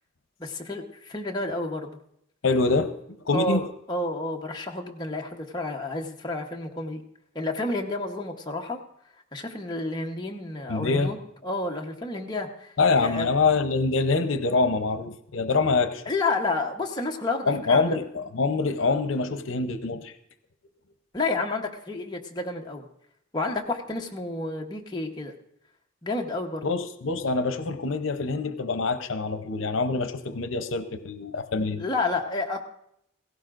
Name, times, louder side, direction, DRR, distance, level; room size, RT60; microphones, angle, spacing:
voice 1, 0.4-2.0 3.3-7.0 7.3-8.8 9.3-11.2 11.4-13.3 16.1-18.0 21.1-22.9 23.3-25.3 26.0-26.7 31.8-32.6, left 2 dB, 20° left, 0 dB, 1.0 m, -30 dB
voice 2, 2.4-2.9 3.3-3.6 10.7-11.1 12.8-16.0 17.5-20.1 26.6-31.8, left 3 dB, 80° left, 9 dB, 0.7 m, -25 dB
16.5 x 16.5 x 2.5 m, 0.72 s
head